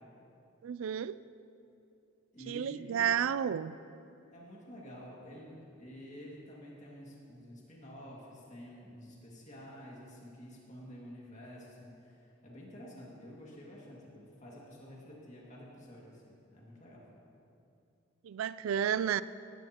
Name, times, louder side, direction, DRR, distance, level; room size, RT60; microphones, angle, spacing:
voice 1, 0.6-1.2 2.5-3.8 18.2-19.2, right 8 dB, 75° right, 0.3 m, -31 dB
voice 2, 2.3-3.1 4.3-17.0, equal, 35° left, 2.1 m, -50 dB
18.0 x 12.0 x 2.9 m
head